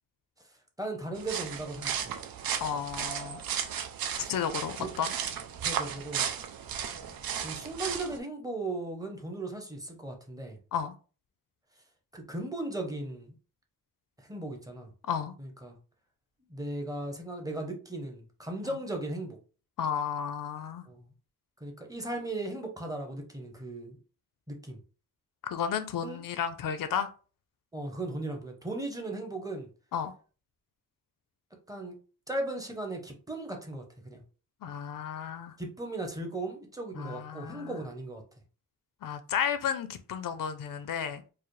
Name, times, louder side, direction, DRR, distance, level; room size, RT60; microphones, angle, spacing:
voice 1, 0.8-2.1 4.1-4.3 4.8-4.9 5.6-6.3 7.4-10.6 12.1-13.3 14.2-14.9 15.4-15.8 16.5-19.4 20.9-21.1 21.6-24.0 24.5-24.8 26.0-26.2 27.7-29.7 31.7-31.9 32.3-34.2 35.6-38.2, right 2 dB, 10° right, 0.7 m, -37 dB
sound 1, 1.1-8.2, right 8 dB, 80° right, 0.6 m, -35 dB
voice 2, 2.6-3.4 4.3-5.1 10.7-10.9 15.1-15.3 19.8-20.8 25.4-27.1 29.9-30.1 34.6-35.5 36.9-37.8 39.0-41.2, left 8 dB, 70° left, 0.5 m, -33 dB
4.7 x 2.0 x 3.1 m
wide cardioid pair, 145°, 35 cm